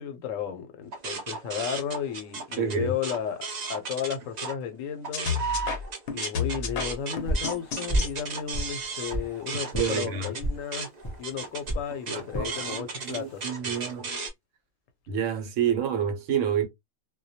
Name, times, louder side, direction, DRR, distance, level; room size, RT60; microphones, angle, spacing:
voice 1, 0.0-5.7 6.1-10.9 11.2-13.5 15.6-15.7, left 8 dB, 85° left, 0.9 m, -34 dB
sound 1, 0.9-4.5 4.9-14.3, right 4 dB, 55° right, 0.5 m, -35 dB
voice 2, 2.6-2.9 9.7-10.3 12.1-12.8 13.0-14.2 15.1-16.7, right 8 dB, 75° right, 1.0 m, -28 dB
sound 2, 5.1-8.1, left 6 dB, 60° left, 0.8 m, -31 dB
sound 3, 7.3-7.5 7.9-8.2 8.5-9.3 9.7-9.9 10.4-10.6 11.0-11.2 11.7-11.9 12.3-12.5 13.1-13.4, equal, 30° left, 0.4 m, -29 dB
2.2 x 2.2 x 2.6 m
omnidirectional pair, 1.3 m